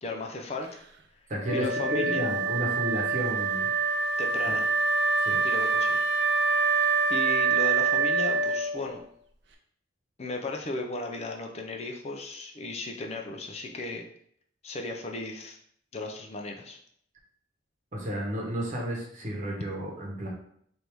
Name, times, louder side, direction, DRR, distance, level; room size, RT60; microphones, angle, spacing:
voice 1, 0.0-0.7 1.5-2.3 4.2-4.6 5.4-6.0 6.3-6.6 7.1-9.0 10.2-14.0 14.6-15.6 15.9-16.8, left 2 dB, 35° left, 2 dB, 0.5 m, -35 dB
voice 2, 1.3-3.7 4.5-4.6 5.2-5.4 17.9-20.3, equal, 40° right, -2 dB, 1.0 m, -32 dB
Wind instrument woodwind instrument, 1.4-9.0, right 4 dB, 65° right, 0.6 m, -26 dB
3.4 x 2.6 x 4.5 m, 0.66 s
head